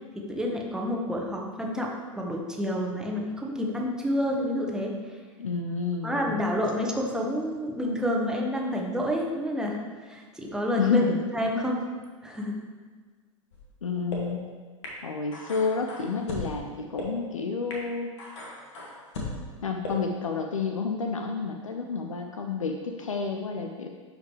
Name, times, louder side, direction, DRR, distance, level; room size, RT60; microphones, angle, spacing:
voice 1, 0.1-5.0 6.0-9.8 10.1-11.1 11.3-11.9 12.2-12.6, equal, 5° right, -1 dB, 1.2 m, -29 dB
voice 2, 5.4-6.2 10.8-11.2 13.8-14.4 15.0-18.1 19.6-23.9, left 4 dB, 80° left, 4 dB, 0.6 m, -29 dB
sound 1, 13.5-13.6 14.1-14.2 14.8-14.9 15.3-16.5 17.0-17.1 17.7-17.8 18.2-19.3 19.8-19.9, left 3 dB, 60° left, 1.9 m, -37 dB
11.5 x 5.0 x 3.3 m, 1.5 s
figure-of-eight pair, 90°, 17 cm